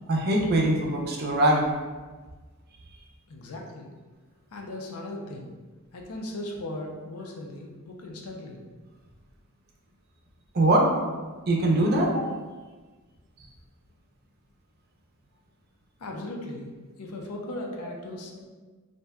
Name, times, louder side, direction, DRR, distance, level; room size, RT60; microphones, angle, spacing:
voice 1, 0.1-1.7 10.5-10.9 11.5-12.2, right 1 dB, 45° right, 0 dB, 0.5 m, -22 dB
voice 2, 3.3-3.9 4.5-5.5 5.9-8.6 16.0-16.7 17.0-18.4, left 1 dB, 80° left, 1 dB, 0.5 m, -37 dB
2.6 x 2.1 x 3.4 m, 1.3 s
head